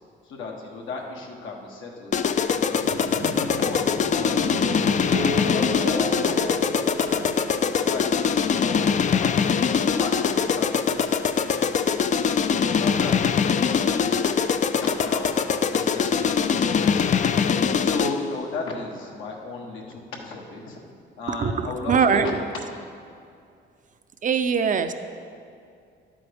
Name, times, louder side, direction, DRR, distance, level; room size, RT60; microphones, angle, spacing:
voice 1, 0.2-2.1 2.5-2.9 3.4-6.7 7.1-7.4 7.6-9.3 9.8-11.9 12.6-14.3 14.7-17.2 17.8-20.8 21.2-22.9, left 3 dB, 85° left, 0 dB, 1.4 m, -35 dB
sound 1, 2.1-18.3, left 6 dB, 40° left, 0.4 m, -23 dB
sound 2, 2.8-16.6, right 1 dB, 85° right, 1.2 m, -36 dB
voice 2, 21.3-22.3 24.2-24.9, right 6 dB, 40° right, 9 dB, 0.5 m, -22 dB
11.0 x 8.6 x 3.5 m, 2.4 s
cardioid pair, 90°, 20 cm